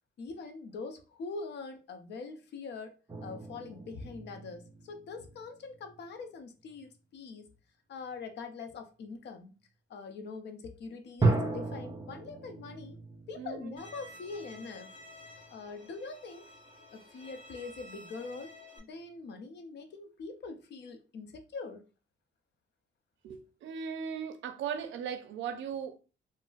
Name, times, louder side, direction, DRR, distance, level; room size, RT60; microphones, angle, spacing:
voice 1, 0.2-7.5 7.9-9.5 9.9-13.0 13.3-15.0 15.5-16.5 16.9-18.5 18.8-21.8, left 4 dB, 60° left, 0.6 m, -43 dB
sound 1, 3.1-6.1 6.6-6.9 11.2-15.5, right 3 dB, 20° right, 0.6 m, -35 dB
voice 2, 13.4-13.8 23.2-26.0, right 7 dB, 70° right, 0.5 m, -38 dB
Bowed string instrument, 13.8-18.8, left 1 dB, 25° left, 0.7 m, -52 dB
3.7 x 2.0 x 2.4 m
cardioid pair, 90°, 20 cm